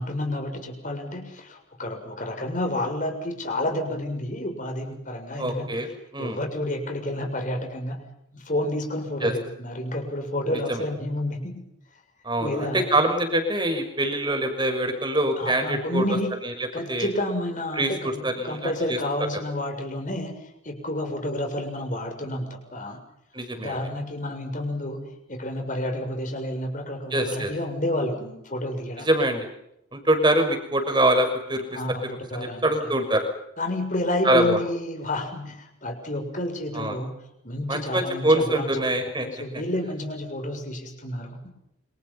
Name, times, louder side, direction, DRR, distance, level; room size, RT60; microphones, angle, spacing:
voice 1, 0.0-5.7 6.2-8.0 8.3-11.6 12.4-12.9 15.4-16.3 16.7-23.0 23.6-29.1 31.7-32.9 33.6-37.1 37.4-38.8 39.2-41.5, left 1 dB, 40° left, 4 dB, 7.0 m, -30 dB
voice 2, 5.4-5.9 6.1-6.4 9.2-9.3 10.5-10.8 12.2-16.0 16.4-16.5 16.9-17.1 17.8-19.0 23.3-23.8 27.1-27.5 29.0-29.5 29.9-31.6 32.3-33.3 34.2-34.6 36.7-37.0 37.7-39.3, right 1 dB, 20° right, 5 dB, 6.2 m, -24 dB
29.0 x 27.0 x 5.7 m, 0.78 s
head